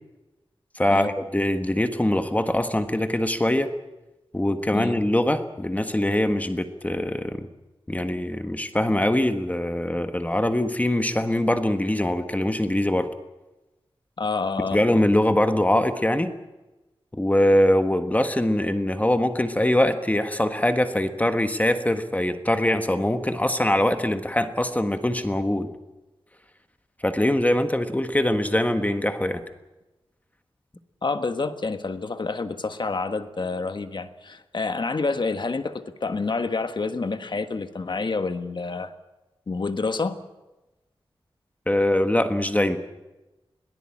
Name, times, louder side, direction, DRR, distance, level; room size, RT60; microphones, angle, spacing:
voice 1, 0.7-3.7 4.3-7.5 7.9-13.1 14.7-16.3 17.1-25.7 27.0-29.4 41.7-42.8, left 1 dB, 15° left, 8 dB, 1.4 m, -23 dB
voice 2, 14.2-14.8 31.0-38.9 39.5-40.2, left 4 dB, 55° left, 9 dB, 1.5 m, -28 dB
22.5 x 17.5 x 8.7 m, 1.0 s
wide cardioid pair, 100°, 9 cm